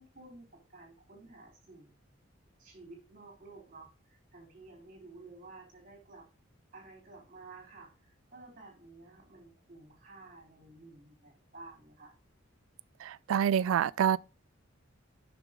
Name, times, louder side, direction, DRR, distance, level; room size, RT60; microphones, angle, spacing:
voice 1, 0.0-1.9 2.6-3.9 4.3-6.3 6.7-7.9 8.3-12.1, right 3 dB, 45° right, 3.5 m, -52 dB
voice 2, 13.0-14.2, right 8 dB, 80° right, 0.3 m, -27 dB
6.8 x 6.1 x 3.6 m
head